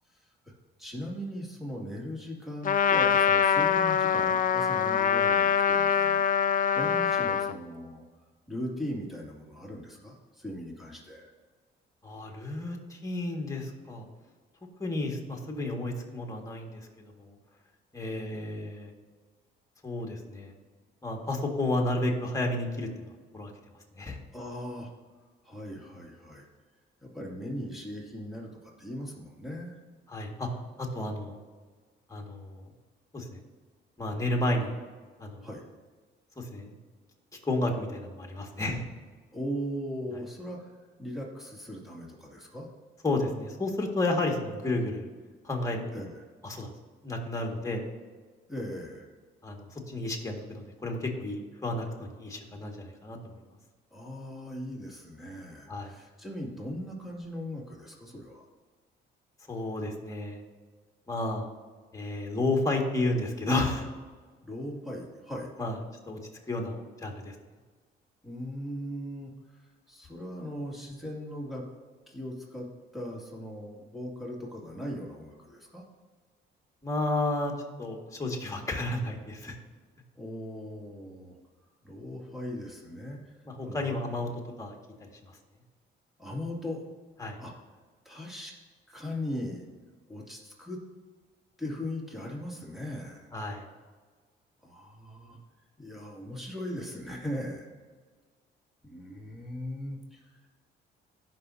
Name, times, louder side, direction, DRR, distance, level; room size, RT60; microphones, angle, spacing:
voice 1, 0.8-6.2 6.7-8.0 8.5-11.3 18.1-18.7 24.3-24.9 25.4-26.5 27.0-29.8 35.4-35.6 39.3-40.7 41.0-42.7 45.9-46.3 48.5-49.1 53.9-58.5 64.4-65.5 68.2-69.6 69.9-71.6 72.1-72.7 72.9-75.8 80.1-81.3 81.8-83.4 83.6-84.3 86.2-86.8 87.4-87.5 88.0-88.5 88.9-89.6 90.1-90.8 91.6-93.3 94.6-95.4 95.8-97.7 98.8-100.5, equal, ahead, -3 dB, 2.5 m, -39 dB
Trumpet, 2.6-7.6, left 8 dB, 45° left, 0.4 m, -24 dB
voice 2, 12.0-14.1 14.8-17.3 17.9-18.9 19.8-20.5 21.0-22.9 23.3-23.5 24.0-24.2 30.1-30.5 30.8-31.4 32.1-32.7 33.1-33.4 34.0-34.8 35.2-35.5 36.4-36.7 37.4-38.9 43.0-45.1 45.4-46.1 46.4-46.7 47.0-47.9 49.4-53.2 55.7-55.9 59.5-60.4 61.1-61.5 61.9-63.9 65.6-65.7 66.1-66.2 66.5-67.3 76.8-77.5 77.8-79.6 83.5-84.3 84.6-84.7 87.2-87.4 93.3-93.7, left 2 dB, 15° left, 0 dB, 2.0 m, -31 dB
17.5 x 6.0 x 2.8 m, 1.5 s
cardioid pair, 90°, 20 cm